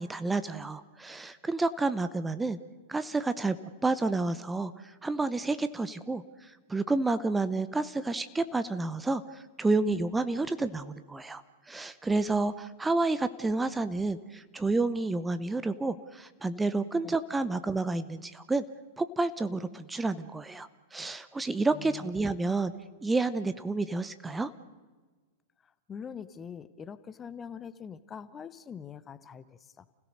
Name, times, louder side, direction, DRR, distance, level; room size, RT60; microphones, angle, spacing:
voice 1, 0.0-2.6 2.9-18.6 19.0-22.7 23.0-24.5, right 3 dB, 10° right, 12 dB, 0.9 m, -30 dB
voice 2, 21.7-22.1 25.9-29.9, left 7 dB, 20° left, 15 dB, 1.0 m, -43 dB
30.0 x 17.0 x 6.6 m, 1.3 s
figure-of-eight pair, 95°, 0 cm